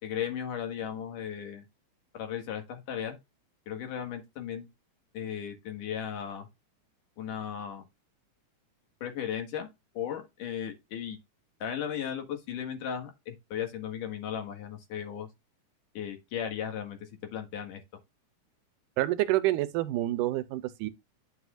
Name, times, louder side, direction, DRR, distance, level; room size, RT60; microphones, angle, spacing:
voice 1, 0.0-1.6 2.1-3.2 3.7-4.7 5.1-6.5 7.2-7.8 9.0-9.7 9.9-11.2 11.6-15.3 15.9-17.8, left 9 dB, 75° left, 3.3 m, -36 dB
voice 2, 19.0-20.9, right 16 dB, 90° right, 2.2 m, -28 dB
9.9 x 6.3 x 2.4 m
omnidirectional pair, 3.7 m